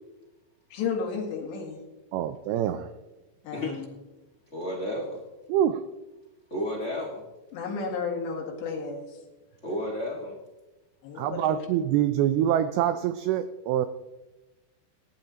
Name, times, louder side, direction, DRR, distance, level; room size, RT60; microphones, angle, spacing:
voice 1, 0.7-1.8 3.4-3.9 7.5-9.2 11.0-11.7, left 5 dB, 85° left, 0 dB, 4.2 m, -32 dB
voice 2, 2.1-2.9 5.5-5.8 11.2-13.9, right 11 dB, 85° right, 11 dB, 2.2 m, -25 dB
voice 3, 4.5-5.2 6.5-7.3 9.6-10.4, left 1 dB, 70° left, -2 dB, 0.6 m, -32 dB
19.0 x 11.0 x 2.9 m, 1.1 s
omnidirectional pair, 4.8 m